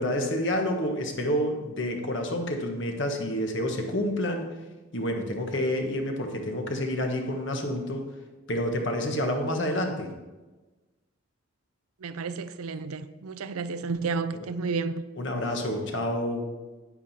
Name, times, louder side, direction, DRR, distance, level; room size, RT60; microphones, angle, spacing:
voice 1, 0.0-4.5 4.9-8.0 8.5-10.1 14.3-14.4 15.2-16.5, left 1 dB, 55° left, 1.3 m, -28 dB
voice 2, 12.0-15.0, right 4 dB, 85° right, 0.5 m, -31 dB
9.1 x 8.8 x 4.2 m
head